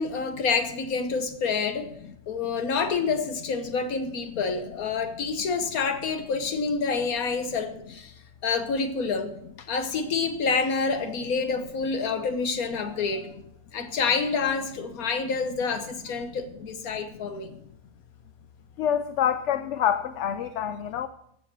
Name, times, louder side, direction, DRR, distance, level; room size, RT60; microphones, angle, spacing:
voice 1, 0.0-1.9 2.3-8.1 8.4-13.3 13.7-17.5, left 5 dB, 90° left, 8 dB, 1.6 m, -28 dB
voice 2, 18.8-21.1, left 9 dB, 65° left, 10 dB, 0.8 m, -26 dB
15.0 x 5.4 x 6.0 m, 0.75 s
omnidirectional pair, 1.5 m